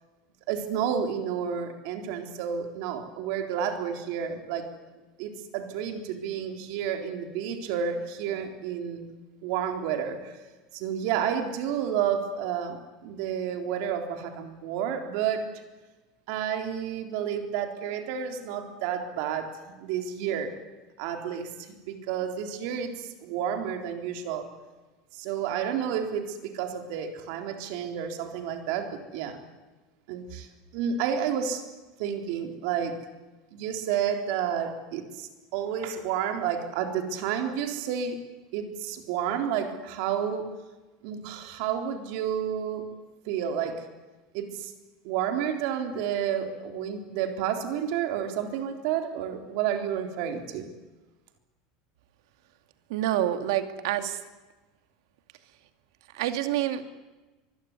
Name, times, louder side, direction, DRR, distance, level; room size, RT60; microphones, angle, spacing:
voice 1, 0.5-4.7 5.2-9.1 9.4-10.3 10.7-15.6 16.3-20.5 21.0-24.5 25.1-29.4 30.1-30.5 30.7-31.6 32.0-33.0 33.5-38.2 38.5-40.5 41.0-42.8 43.2-43.9 44.3-44.7 45.0-50.7, right 8 dB, 60° right, 5 dB, 3.9 m, -30 dB
voice 2, 52.9-54.2 56.1-56.8, right 12 dB, 75° right, 8 dB, 2.4 m, -27 dB
25.0 x 22.0 x 9.8 m, 1.2 s
cardioid pair, 170°, 2 cm